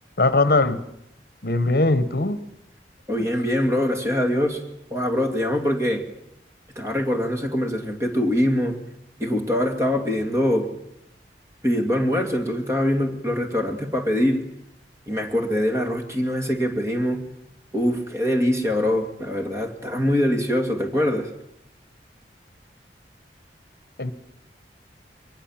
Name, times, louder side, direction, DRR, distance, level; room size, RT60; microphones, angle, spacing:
voice 1, 0.2-0.8 1.4-2.4 24.0-24.1, left 2 dB, 55° left, 13 dB, 1.0 m, -20 dB
voice 2, 3.1-4.6 4.9-6.0 6.8-8.8 9.2-10.7 11.6-14.4 15.1-17.2 17.7-21.3, equal, 15° right, 4 dB, 2.3 m, -23 dB
23.0 x 19.0 x 7.4 m, 0.81 s
head